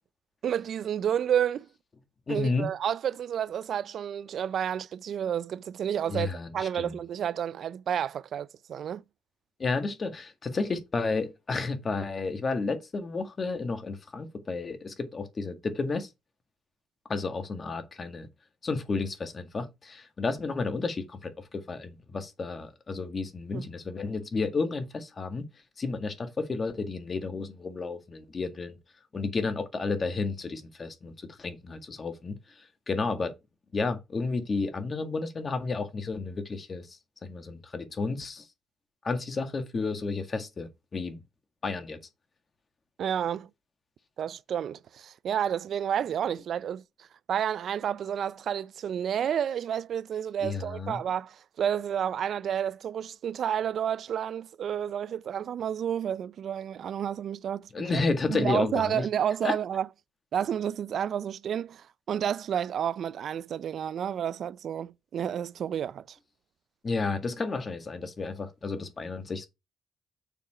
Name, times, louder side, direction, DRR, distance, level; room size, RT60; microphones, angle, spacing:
voice 1, 0.4-1.7 2.3-9.0 23.5-23.6 43.0-43.5 44.2-58.0 58.3-59.9 60.3-66.2, right 9 dB, 60° right, 0.4 m, -30 dB
voice 2, 2.3-2.7 6.1-7.0 9.6-16.1 17.1-18.3 18.6-25.5 25.8-28.8 29.1-33.3 33.7-38.5 39.0-41.2 41.6-42.0 50.4-51.0 57.7-59.1 59.4-59.6 66.8-69.5, left 4 dB, 35° left, 1.9 m, -32 dB
7.0 x 4.3 x 5.8 m
cardioid pair, 90°, 0 cm